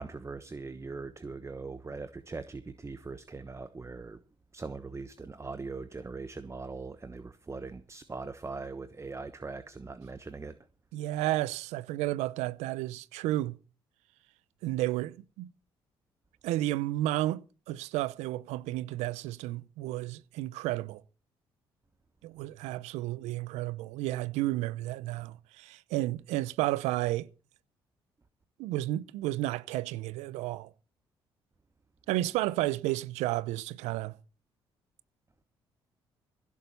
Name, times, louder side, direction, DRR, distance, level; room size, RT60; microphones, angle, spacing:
voice 1, 0.0-4.2 4.5-10.6, right 3 dB, 25° right, 1.1 m, -41 dB
voice 2, 10.9-13.6 14.6-15.5 16.4-21.0 22.2-27.3 28.6-30.7 32.1-34.1, right 16 dB, 80° right, 0.6 m, -32 dB
16.0 x 7.2 x 6.7 m
hypercardioid pair, 50°, 12 cm